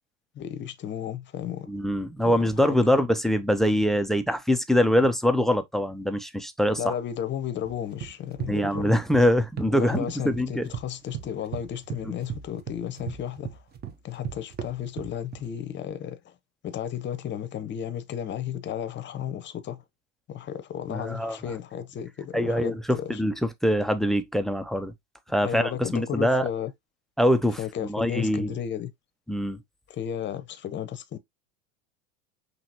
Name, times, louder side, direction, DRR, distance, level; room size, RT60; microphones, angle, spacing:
voice 1, 0.3-1.7 2.2-2.3 2.6-2.8 6.8-8.9 9.7-13.6 14.0-16.3 16.6-19.8 20.3-23.2 25.4-26.7 27.6-28.9 29.9-31.2, left 9 dB, 30° left, 0.8 m, -33 dB
voice 2, 1.7-6.9 8.5-10.7 12.0-12.1 20.9-21.4 22.3-24.9 25.3-26.4 27.2-27.6 27.9-28.5 29.3-29.6, equal, ahead, 0.4 m, -24 dB
sound 1, 7.6-9.3 9.6-10.9 11.1-15.4, right 9 dB, 25° right, 0.9 m, -36 dB
5.7 x 3.0 x 2.8 m
hypercardioid pair, 105°, 38 cm